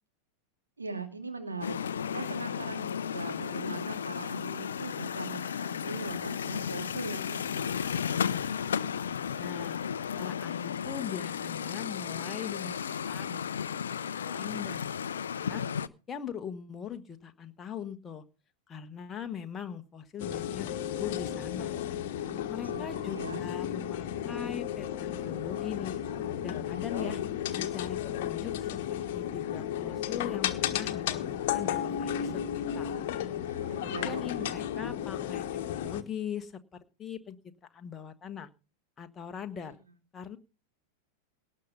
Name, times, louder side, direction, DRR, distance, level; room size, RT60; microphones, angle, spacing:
voice 1, 0.8-7.9 22.6-23.4 26.7-27.2 33.4-34.9 39.6-39.7, right 3 dB, 80° right, 5 dB, 2.5 m, -41 dB
sound 1, 1.6-15.9, left 7 dB, 65° left, 0.6 m, -34 dB
voice 2, 9.4-9.8 10.1-14.9 15.1-15.6 16.1-18.2 18.7-21.8 22.5-25.9 26.4-27.2 27.6-28.7 29.1-32.9 33.7-36.6 37.0-37.4 37.7-38.5 39.0-39.8 40.1-40.4, left 8 dB, 20° left, 7 dB, 1.2 m, -41 dB
sound 2, 20.2-36.0, left 10 dB, 50° left, 1.3 m, -33 dB
18.5 x 6.5 x 5.6 m, 0.33 s
figure-of-eight pair, 90°, 0 cm